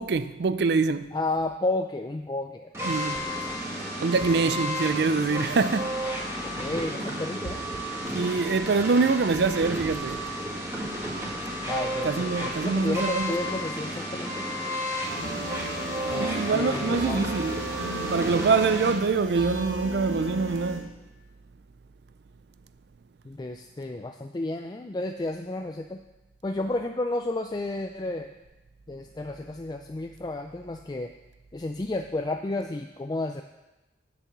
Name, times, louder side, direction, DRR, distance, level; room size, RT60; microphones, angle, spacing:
voice 1, 0.0-1.1 2.8-3.3 4.0-6.1 8.1-10.2 12.0-13.6 16.2-17.6 18.0-20.9, right 4 dB, 55° right, 0.4 m, -25 dB
voice 2, 1.1-3.0 6.4-7.7 11.6-14.5 16.1-17.3 23.2-26.0 26.4-28.3 28.9-31.1 31.5-33.4, left 2 dB, 20° left, 0.3 m, -32 dB
sound 1, 2.7-18.9, equal, 15° right, 1.8 m, -32 dB
sound 2, 15.0-20.8, right 1 dB, 75° right, 1.9 m, -35 dB
8.3 x 6.8 x 7.4 m
head